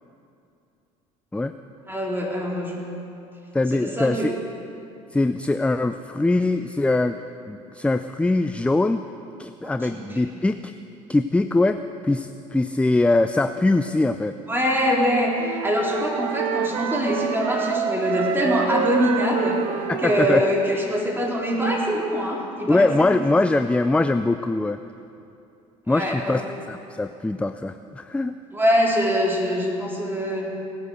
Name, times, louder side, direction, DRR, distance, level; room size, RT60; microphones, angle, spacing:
voice 1, 1.9-2.7 3.7-4.3 9.6-10.2 14.5-23.2 25.9-26.4 28.5-30.5, equal, 10° right, -3 dB, 4.0 m, -24 dB
voice 2, 3.5-4.4 5.1-7.2 7.5-9.0 9.4-10.7 11.1-14.4 19.9-20.4 22.7-24.8 25.9-26.4 26.7-28.3, left 2 dB, 5° left, 10 dB, 0.4 m, -22 dB
Wind instrument woodwind instrument, 15.4-20.6, right 8 dB, 75° right, 1.0 m, -28 dB
18.0 x 9.5 x 6.5 m, 2.7 s
hypercardioid pair, 70°, 17 cm